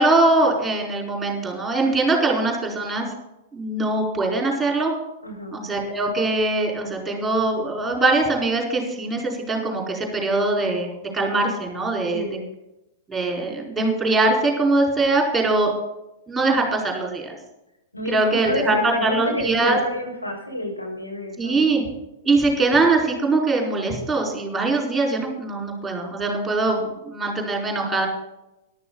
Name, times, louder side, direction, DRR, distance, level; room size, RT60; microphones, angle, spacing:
voice 1, 0.0-3.1 3.5-4.9 5.5-10.9 11.1-12.2 13.1-15.7 16.3-17.4 18.1-19.8 21.4-21.9 22.2-28.1, right 2 dB, 5° right, 0 dB, 4.7 m, -22 dB
voice 2, 5.2-5.6 12.1-12.5 17.9-21.6, left 1 dB, 85° left, -2 dB, 5.3 m, -29 dB
14.0 x 12.0 x 4.1 m, 0.92 s
figure-of-eight pair, 100°, 0 cm